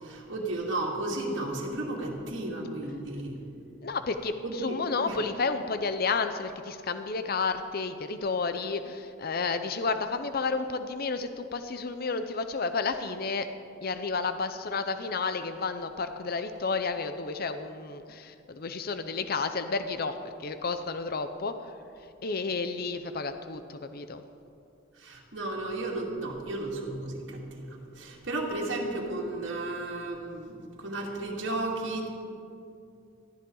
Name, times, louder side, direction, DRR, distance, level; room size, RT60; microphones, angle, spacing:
voice 1, 0.0-3.4 4.4-5.2 25.0-32.1, right 2 dB, 70° right, -3 dB, 2.4 m, -34 dB
voice 2, 3.8-13.5 13.8-21.7 22.2-24.2, left 4 dB, 50° left, 9 dB, 0.6 m, -31 dB
18.0 x 14.5 x 3.9 m, 2.5 s
head